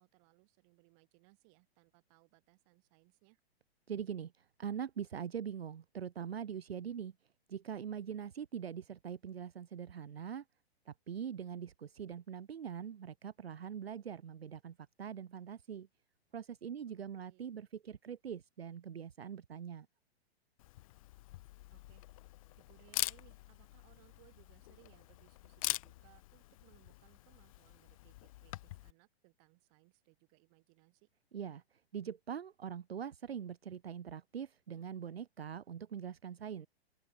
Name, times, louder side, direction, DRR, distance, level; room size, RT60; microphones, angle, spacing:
voice 1, 0.0-3.4 16.8-17.5 21.7-22.0 22.6-31.1, right 34 dB, 35° right, 2.6 m, -67 dB
voice 2, 3.9-7.1 7.5-10.4 10.9-15.9 16.3-19.9 31.3-31.6 31.9-36.7, right 8 dB, 70° right, 1.0 m, -43 dB
Camera, 20.6-28.9, left 17 dB, 35° left, 0.6 m, -44 dB
open air
figure-of-eight pair, 115°, 32 cm